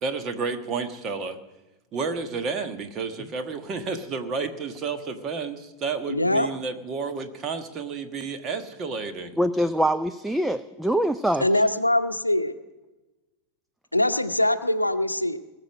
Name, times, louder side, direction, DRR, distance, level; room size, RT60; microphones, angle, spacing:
voice 1, 0.0-1.4 1.9-9.3, right 4 dB, 30° right, 7 dB, 1.4 m, -31 dB
voice 2, 6.1-6.5 11.4-12.6 13.9-15.4, left 1 dB, 85° left, 10 dB, 0.7 m, -23 dB
voice 3, 9.4-11.4, right 1 dB, 5° right, 11 dB, 0.4 m, -24 dB
19.5 x 6.9 x 9.0 m, 1.1 s
figure-of-eight pair, 90°, 0 cm